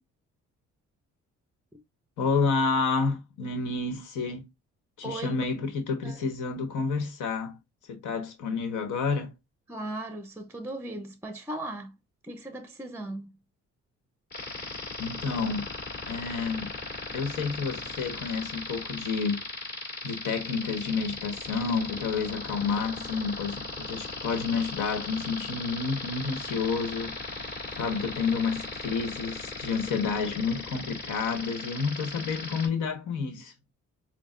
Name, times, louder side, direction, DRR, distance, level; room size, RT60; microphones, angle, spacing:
voice 1, 2.2-4.5 5.0-7.6 7.9-9.3 15.0-15.7 16.0-16.7 17.1-19.4 20.0-33.5, left 4 dB, 80° left, 1.3 m, -30 dB
voice 2, 5.0-5.4 6.0-6.3 9.7-11.9 12.2-13.3, right 1 dB, 10° right, 0.6 m, -37 dB
sound 1, 14.3-32.7, left 3 dB, 35° left, 2.1 m, -37 dB
6.1 x 2.2 x 2.4 m
cardioid pair, 90°, 30 cm